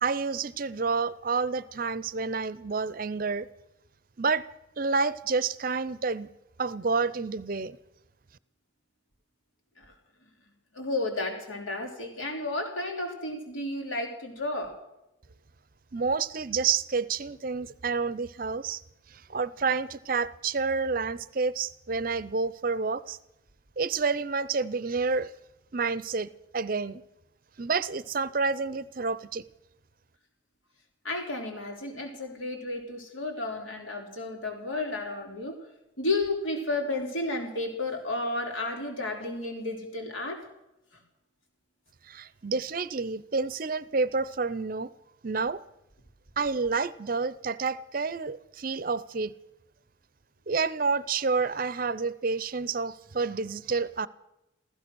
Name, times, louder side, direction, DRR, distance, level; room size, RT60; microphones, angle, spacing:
voice 1, 0.0-3.5 4.2-4.5 4.8-6.3 6.6-7.8 15.9-18.8 19.1-23.2 23.8-25.3 25.7-27.0 27.6-29.4 42.0-44.9 45.2-45.6 46.4-49.3 50.5-54.1, right 4 dB, 45° right, 0.6 m, -29 dB
voice 2, 10.7-14.7 31.0-35.6 36.0-40.4 40.9-41.0, left 2 dB, 80° left, 3.9 m, -32 dB
15.5 x 15.0 x 6.2 m
head